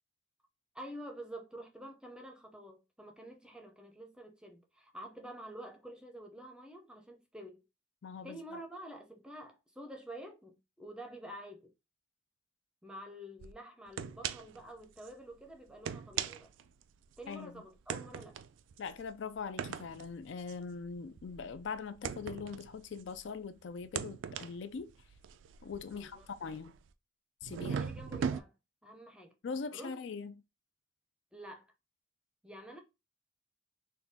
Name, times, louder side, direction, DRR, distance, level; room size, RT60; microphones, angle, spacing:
voice 1, 0.7-7.6 8.2-11.7 12.8-16.5 17.2-18.4 25.9-26.3 27.6-28.5 28.8-29.3 29.7-30.1 31.3-31.7 32.4-32.8, right 1 dB, 5° right, 0.6 m, -48 dB
voice 2, 8.0-8.4 17.3-17.6 18.8-24.9 25.6-26.7 27.4-27.8 29.4-30.3, left 5 dB, 65° left, 0.4 m, -41 dB
sound 1, 13.4-13.5 14.0-14.6 15.0-15.1 15.7-17.3 17.9-23.4 23.8-26.9 27.4-28.4, right 7 dB, 70° right, 0.3 m, -40 dB
4.1 x 2.2 x 3.5 m
head